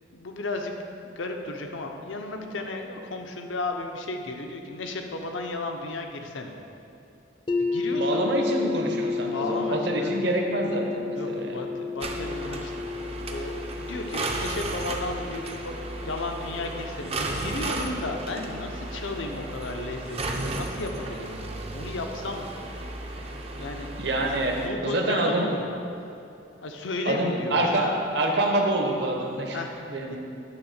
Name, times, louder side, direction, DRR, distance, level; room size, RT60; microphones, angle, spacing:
voice 1, 0.1-0.7 1.0-6.5 7.6-8.3 9.2-10.1 11.1-13.0 13.3-22.5 23.6-23.9 24.6-25.7 26.6-28.0 29.5-29.7 30.1-30.2, left 2 dB, 75° left, 3 dB, 0.7 m, -34 dB
sound 1, 7.5-19.4, left 4 dB, 25° left, 0.4 m, -33 dB
voice 2, 7.9-11.7 24.0-25.5 27.0-29.6 29.9-30.2, right 1 dB, 60° right, 1 dB, 0.9 m, -26 dB
sound 2, 12.0-24.7, right 2 dB, 30° right, 0.5 m, -34 dB
8.9 x 3.5 x 6.5 m, 2.9 s
head